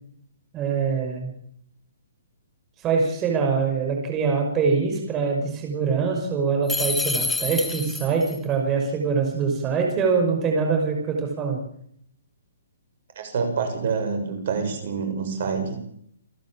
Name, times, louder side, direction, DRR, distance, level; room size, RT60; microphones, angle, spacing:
voice 1, 0.5-1.3 2.8-11.6, right 5 dB, 20° right, 1 dB, 5.9 m, -24 dB
sound 1, 6.7-8.4, left 3 dB, 5° left, 1.5 m, -27 dB
voice 2, 13.2-15.8, right 5 dB, 55° right, 6 dB, 7.0 m, -27 dB
28.5 x 11.5 x 8.8 m, 0.70 s
hypercardioid pair, 140°, 0 cm